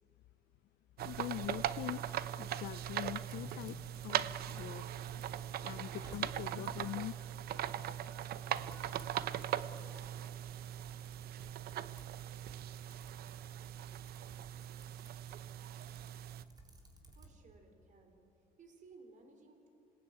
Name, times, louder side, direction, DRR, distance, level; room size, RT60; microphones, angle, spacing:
voice 1, 1.0-2.0 2.4-4.8 5.1-5.2 5.6-7.3 7.8-8.0 8.4-8.8, left 14 dB, 70° left, 12 dB, 0.6 m, -43 dB
sound 1, 1.0-16.4, right 11 dB, 65° right, 0.8 m, -40 dB
Typing, 1.1-17.4, right 2 dB, 25° right, 4.0 m, -60 dB
voice 2, 17.1-18.2 18.6-19.7, right 3 dB, 50° right, 5 dB, 4.7 m, -59 dB
27.0 x 19.5 x 9.3 m, 2.6 s
cardioid pair, 110°, 17 cm